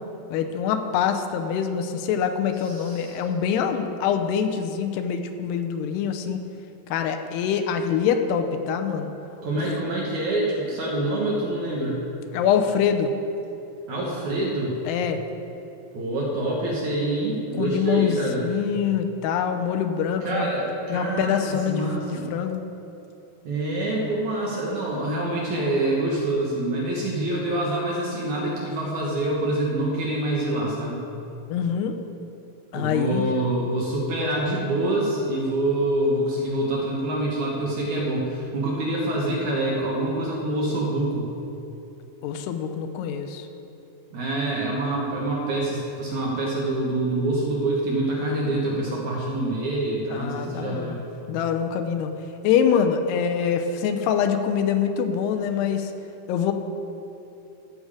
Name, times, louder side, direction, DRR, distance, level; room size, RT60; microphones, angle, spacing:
voice 1, 0.3-6.4 6.9-9.1 12.3-13.1 14.9-15.2 17.5-20.5 20.9-22.6 31.5-32.0 32.7-33.2 42.2-43.5 50.1-50.9 51.3-52.1 52.4-55.9 56.3-56.5, left 7 dB, 85° left, 6 dB, 2.7 m, -24 dB
voice 2, 2.6-3.2 9.4-12.0 13.9-14.7 15.9-18.4 20.2-22.2 23.4-31.0 32.7-41.3 44.1-51.0, right 1 dB, 60° right, -4 dB, 2.3 m, -26 dB
12.5 x 8.0 x 4.9 m, 2.8 s
omnidirectional pair, 4.7 m